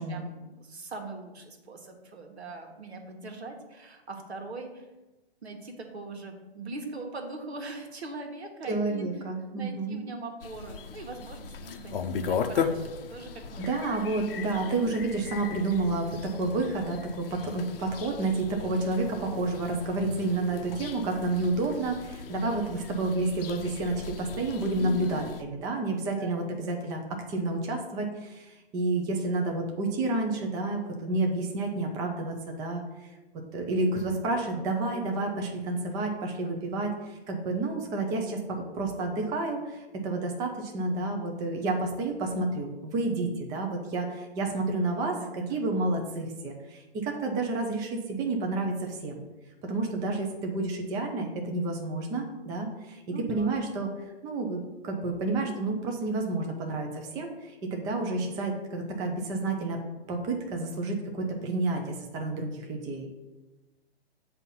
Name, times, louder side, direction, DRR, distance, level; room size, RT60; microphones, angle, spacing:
voice 1, 0.1-4.9 5.4-9.1 9.5-13.6 24.8-25.3 26.2-26.4 45.1-45.6 53.1-53.5, right 2 dB, 80° right, 3 dB, 1.4 m, -41 dB
voice 2, 8.7-10.0 13.6-33.1 33.5-49.2 49.6-59.8 60.1-63.1, right 2 dB, 10° right, 2 dB, 0.4 m, -30 dB
sound 1, 10.4-25.4, left 6 dB, 60° left, 0.6 m, -37 dB
7.9 x 2.8 x 5.5 m, 1.1 s
hypercardioid pair, 135°, 32 cm